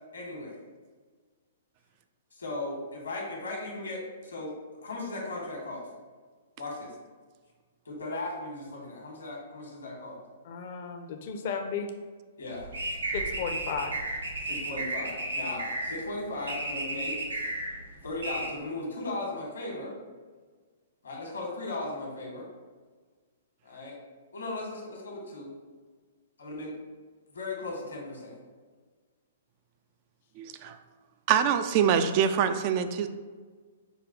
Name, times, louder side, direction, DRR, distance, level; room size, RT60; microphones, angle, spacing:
voice 1, 0.1-0.6 2.3-4.5 4.8-5.9 6.6-6.9 7.8-10.2 12.4-12.7 14.4-17.2 18.0-19.9 21.0-22.5 23.6-24.0 24.3-25.5 26.4-26.7 27.3-28.3, left 2 dB, 80° left, -1 dB, 1.2 m, -37 dB
voice 2, 10.4-11.9 13.1-14.0, left 6 dB, 55° left, 4 dB, 0.5 m, -34 dB
sound 1, 12.5-18.5, right 2 dB, 85° right, 0.8 m, -34 dB
voice 3, 30.4-30.8 31.3-33.1, right 8 dB, 40° right, 10 dB, 0.3 m, -25 dB
5.0 x 2.3 x 3.7 m, 1.5 s
hypercardioid pair, 120°, 0 cm